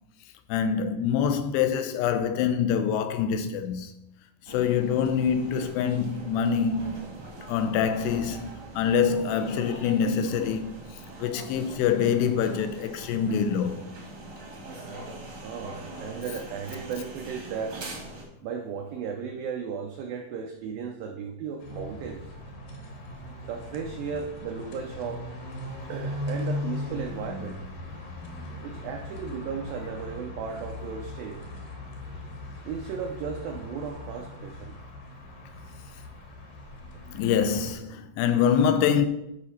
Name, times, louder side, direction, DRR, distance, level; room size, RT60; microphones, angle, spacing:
voice 1, 0.5-3.9 4.5-7.0 7.5-10.8 11.2-13.8 37.1-39.1, left 7 dB, 80° left, 2.5 m, -25 dB
sound 1, 4.5-18.2, right 2 dB, 55° right, 1.1 m, -42 dB
voice 2, 15.4-17.8 18.4-22.3 23.5-25.3 25.9-27.6 28.6-31.4 32.7-34.8 36.8-37.1, right 6 dB, 90° right, 2.0 m, -35 dB
sound 2, 21.6-37.7, left 1 dB, 65° left, 2.4 m, -38 dB
10.5 x 4.0 x 5.7 m
omnidirectional pair, 5.1 m